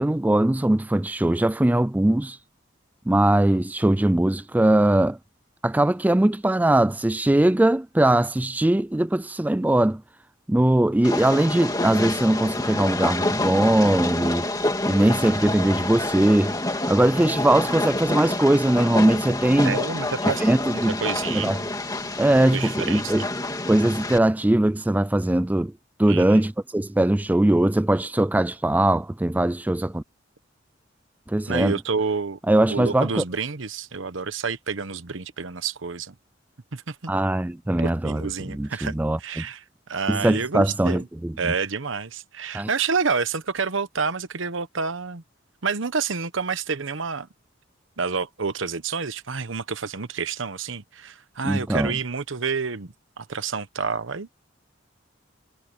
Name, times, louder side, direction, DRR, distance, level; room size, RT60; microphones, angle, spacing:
voice 1, 0.0-2.4 3.1-5.2 5.6-10.0 10.5-14.5 14.9-16.5 16.9-19.8 20.4-21.0 21.3-21.6 22.2-23.2 23.7-25.7 26.0-30.0 31.3-31.7 32.5-33.2 37.1-38.2 38.5-39.2 40.1-41.5 42.5-42.7 51.4-51.9, right 1 dB, 10° right, 0.3 m, -20 dB
Train, 11.0-24.2, left 2 dB, 20° left, 2.4 m, -28 dB
voice 2, 19.6-21.7 22.5-23.3 26.1-26.4 31.5-32.4 32.7-36.1 36.7-36.9 37.8-38.9 39.2-39.6 39.9-41.1 41.4-45.2 45.6-47.3 48.0-54.3, right 5 dB, 80° right, 1.1 m, -29 dB
head